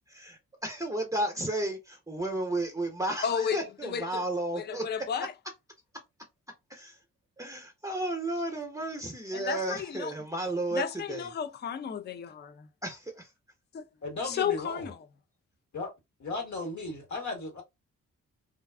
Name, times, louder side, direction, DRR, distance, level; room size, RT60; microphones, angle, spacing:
voice 1, 0.1-4.8 6.7-7.0 7.4-10.8 11.1-11.3 12.8-13.3, right 1 dB, 10° right, 0.8 m, -33 dB
voice 2, 3.2-4.2 4.5-5.3 9.3-10.1 10.7-12.7 13.7-13.8 14.2-15.0, left 8 dB, 30° left, 0.4 m, -33 dB
voice 3, 14.0-14.9 15.7-15.9 16.2-17.6, left 3 dB, 55° left, 1.5 m, -35 dB
2.5 x 2.3 x 2.3 m
supercardioid pair, 45°, 33 cm